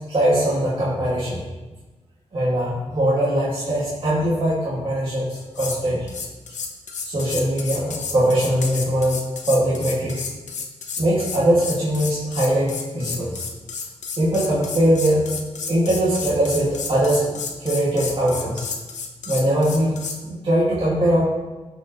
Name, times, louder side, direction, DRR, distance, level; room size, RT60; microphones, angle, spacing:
voice 1, 0.0-1.4 2.3-6.1 7.0-10.2 11.0-13.4 14.2-15.3 15.7-17.3 17.6-18.6 19.3-21.2, right 1 dB, 45° right, -8 dB, 2.2 m, -21 dB
sound 1, 5.3-5.8 6.1-20.2, left 5 dB, 90° left, 0.9 m, -32 dB
15.5 x 5.4 x 3.1 m, 1.2 s
cardioid pair, 85°, 12 cm